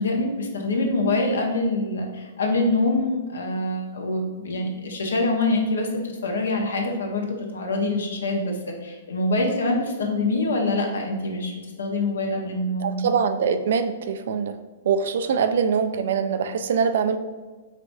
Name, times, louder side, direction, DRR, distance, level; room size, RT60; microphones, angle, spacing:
voice 1, 0.0-11.5 11.8-13.1, left 2 dB, 75° left, 2 dB, 0.8 m, -25 dB
voice 2, 12.8-14.6 14.8-17.2, right 6 dB, 65° right, 10 dB, 0.3 m, -23 dB
4.8 x 3.3 x 2.6 m, 1.3 s
hypercardioid pair, 115°, 0 cm